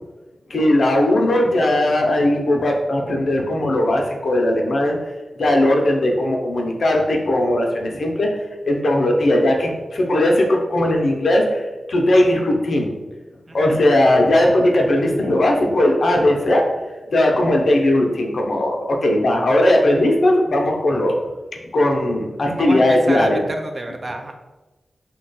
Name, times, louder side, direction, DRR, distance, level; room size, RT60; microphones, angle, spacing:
voice 1, 0.5-5.0 5.4-8.3 8.7-12.9 13.5-16.6 17.1-21.2 21.7-23.4, left 1 dB, 65° left, 1 dB, 0.5 m, -18 dB
voice 2, 22.5-24.3, right 2 dB, 40° right, 4 dB, 0.4 m, -29 dB
2.9 x 2.2 x 3.9 m, 1.1 s
wide cardioid pair, 80°, 0 cm